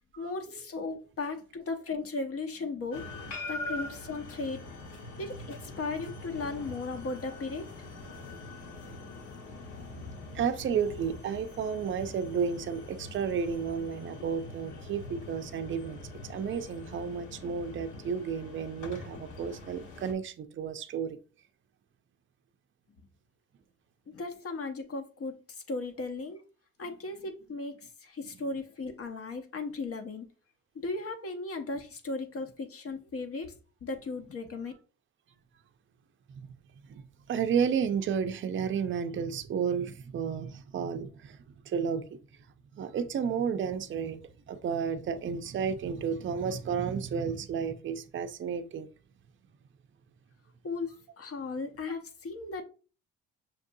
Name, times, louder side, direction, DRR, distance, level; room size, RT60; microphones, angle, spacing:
voice 1, 0.2-3.0 3.5-4.7 5.2-7.7 24.1-26.4 26.8-30.3 30.8-33.5 33.8-34.7 50.6-52.6, left 3 dB, 50° left, 0.8 m, -36 dB
sound 1, 2.9-20.1, left 2 dB, 75° left, 1.3 m, -43 dB
voice 2, 9.8-21.2 36.3-36.5 36.9-37.0 37.3-41.4 41.6-42.2 42.7-48.9, right 7 dB, 40° right, 0.5 m, -32 dB
5.9 x 2.6 x 2.6 m
cardioid pair, 90°, 30 cm